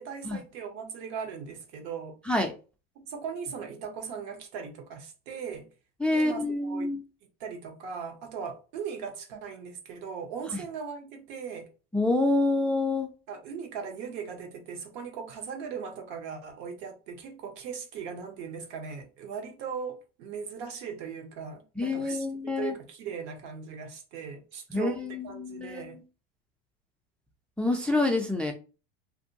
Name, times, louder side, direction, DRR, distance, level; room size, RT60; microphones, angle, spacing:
voice 1, 0.0-2.2 3.0-5.7 6.1-6.9 7.4-11.7 13.3-22.3 22.5-26.0, right 6 dB, 65° right, 1.0 m, -39 dB
voice 2, 6.0-7.0 10.5-10.6 11.9-13.1 21.8-22.7 24.7-26.0 27.6-28.5, left 2 dB, 5° left, 0.3 m, -27 dB
2.6 x 2.2 x 2.7 m
supercardioid pair, 105°, 30 cm